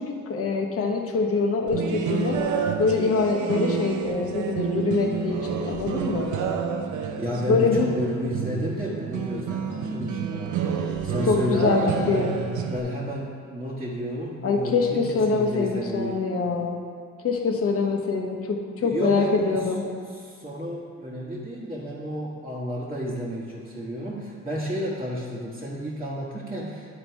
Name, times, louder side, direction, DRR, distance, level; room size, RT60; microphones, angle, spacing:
voice 1, 0.0-2.4 2.8-6.3 7.5-7.9 11.3-12.3 14.4-16.8 17.2-19.8, left 4 dB, 50° left, 2 dB, 1.1 m, -24 dB
sound 1, 1.7-12.8, right 6 dB, 75° right, 0.7 m, -29 dB
voice 2, 7.2-12.3 12.7-16.3 18.8-19.7 20.1-27.0, equal, 20° right, -6 dB, 1.3 m, -31 dB
10.0 x 4.5 x 4.6 m, 2.1 s
cardioid pair, 90°, 30 cm